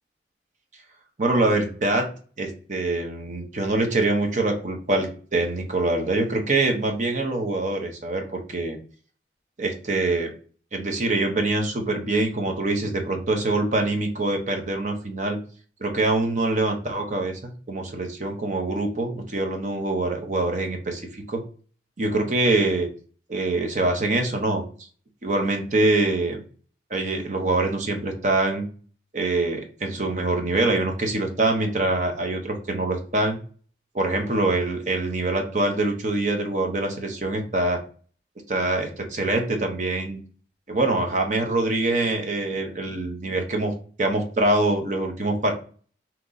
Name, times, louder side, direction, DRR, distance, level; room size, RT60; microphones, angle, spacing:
voice 1, 1.2-2.1 2.4-8.8 9.6-10.3 10.7-15.4 15.8-17.4 17.7-21.4 22.0-22.9 23.3-24.6 25.2-26.4 26.9-28.7 29.1-33.4 33.9-37.8 38.5-40.2 40.7-43.7 44.0-45.5, right 2 dB, 40° right, 3 dB, 0.8 m, -24 dB
3.8 x 3.0 x 3.8 m, 0.42 s
head